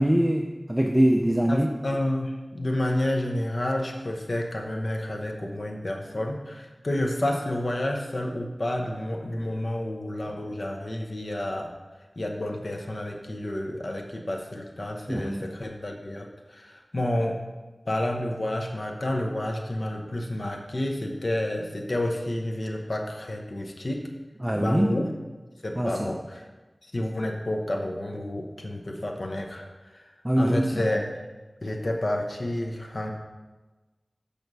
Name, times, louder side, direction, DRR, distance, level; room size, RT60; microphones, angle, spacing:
voice 1, 0.0-1.7 15.1-15.5 24.4-24.9 25.8-25.9 30.2-30.7, right 1 dB, 15° right, 3 dB, 0.6 m, -23 dB
voice 2, 1.5-11.7 12.2-17.4 17.9-24.1 24.5-25.1 25.6-26.5 26.8-31.2 31.6-33.1, left 1 dB, 60° left, 1 dB, 0.9 m, -30 dB
6.8 x 6.2 x 5.3 m, 1.2 s
wide cardioid pair, 50°, 0 cm